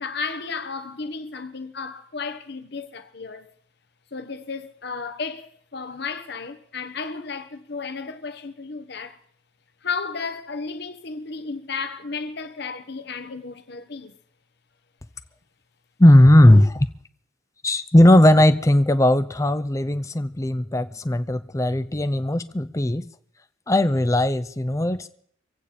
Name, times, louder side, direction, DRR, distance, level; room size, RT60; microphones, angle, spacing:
voice 1, 0.0-3.5 4.1-9.2 9.8-14.2, left 4 dB, 55° left, 1.1 m, -33 dB
voice 2, 16.0-16.9 17.6-23.1 23.7-25.1, left 1 dB, 15° left, 0.5 m, -17 dB
25.0 x 8.6 x 5.1 m
head